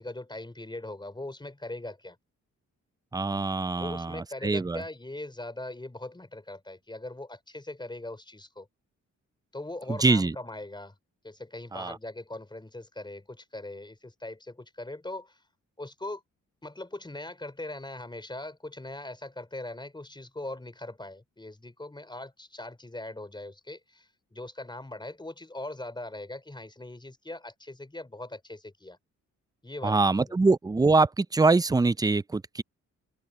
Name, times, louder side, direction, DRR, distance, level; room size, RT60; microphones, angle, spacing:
voice 1, 0.0-2.2 3.7-8.7 9.5-10.9 11.2-15.4 15.8-16.2 16.6-29.0 29.6-30.3, left 2 dB, 15° left, 4.7 m, -40 dB
voice 2, 3.1-4.8 10.0-10.4 11.7-12.0 29.8-32.6, right 3 dB, 15° right, 0.4 m, -24 dB
open air
cardioid pair, 70°, 30 cm